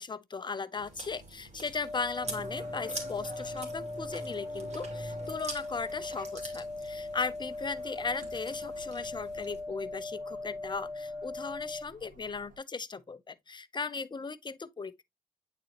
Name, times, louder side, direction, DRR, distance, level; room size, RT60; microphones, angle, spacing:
voice 1, 0.0-15.0, left 4 dB, 35° left, 0.7 m, -37 dB
Chewing mastication, 0.7-9.6, right 3 dB, 50° right, 2.5 m, -46 dB
sound 1, 1.8-11.8, left 3 dB, 10° right, 1.2 m, -39 dB
sound 2, 2.2-12.6, right 2 dB, 70° right, 1.9 m, -50 dB
8.9 x 4.2 x 2.9 m
cardioid pair, 65°, 14 cm